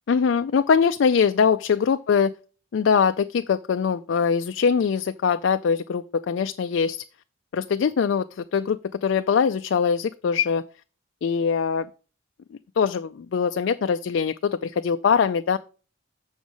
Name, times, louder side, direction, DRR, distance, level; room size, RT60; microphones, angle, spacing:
voice 1, 0.1-2.3 2.7-7.0 7.5-10.6 11.2-11.9 12.5-15.6, left 6 dB, 60° left, 10 dB, 0.3 m, -22 dB
7.1 x 6.3 x 5.4 m, 0.37 s
head